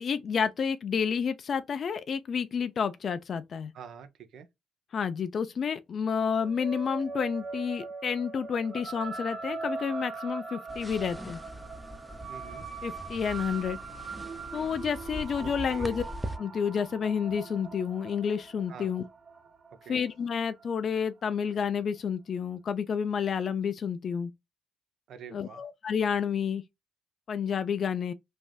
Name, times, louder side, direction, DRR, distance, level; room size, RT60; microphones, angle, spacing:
voice 1, 0.0-3.7 4.9-11.4 12.8-13.8 14.5-16.0 16.4-19.0 19.9-24.3 25.3-26.6 27.3-28.1, left 7 dB, 55° left, 0.3 m, -30 dB
voice 2, 3.7-4.5 12.3-12.6 15.4-16.0 18.7-18.9 19.7-20.0 25.1-25.6, right 7 dB, 70° right, 0.6 m, -47 dB
sound 1, 6.4-21.1, right 4 dB, 45° right, 1.3 m, -41 dB
sound 2, 10.7-16.4, equal, ahead, 0.5 m, -42 dB
3.1 x 2.6 x 2.2 m
supercardioid pair, 65°, 0 cm